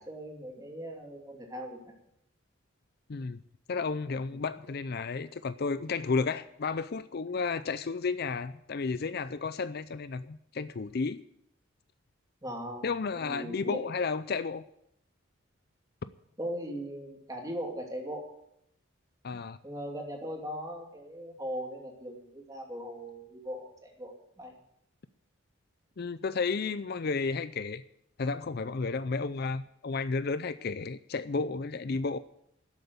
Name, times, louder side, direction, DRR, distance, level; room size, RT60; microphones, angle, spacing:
voice 1, 0.0-1.9 4.3-4.4 12.4-13.8 16.4-18.3 19.6-24.6, equal, 15° right, 1 dB, 2.7 m, -39 dB
voice 2, 3.7-11.2 12.8-14.7 19.2-19.6 26.0-27.8 28.2-32.2, left 4 dB, 50° left, 14 dB, 0.5 m, -32 dB
12.0 x 8.0 x 9.4 m, 0.76 s
head